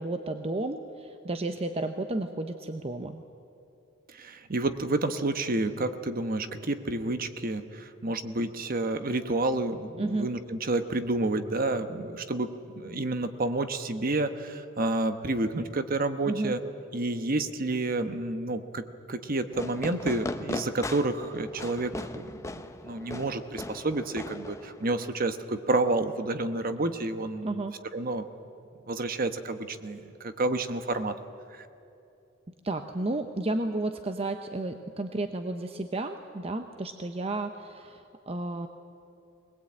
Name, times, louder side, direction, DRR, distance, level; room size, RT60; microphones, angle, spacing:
voice 1, 0.0-3.2 10.0-10.3 16.3-16.5 27.4-27.7 32.6-38.7, right 2 dB, 30° right, 7 dB, 0.8 m, -32 dB
voice 2, 4.2-16.6 16.9-27.6 27.9-28.3 28.9-31.1, right 2 dB, 45° right, 9 dB, 1.1 m, -30 dB
Fireworks, 19.5-25.1, left 1 dB, 15° left, 0.7 m, -38 dB
21.5 x 20.0 x 8.8 m, 2.7 s
head